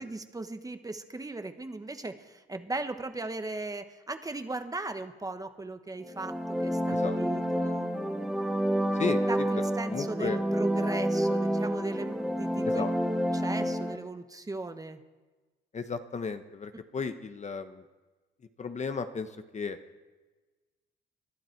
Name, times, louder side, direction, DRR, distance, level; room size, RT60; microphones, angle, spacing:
voice 1, 0.0-7.9 9.0-12.8 13.3-15.0 16.7-16.8, right 2 dB, 20° right, 8 dB, 1.1 m, -37 dB
sound 1, 6.0-14.0, equal, ahead, 1.5 m, -29 dB
voice 2, 8.9-10.4 12.6-12.9 15.7-17.8 18.6-19.8, left 5 dB, 35° left, 9 dB, 0.9 m, -35 dB
20.0 x 11.5 x 4.6 m, 1.2 s
cardioid pair, 90°, 20 cm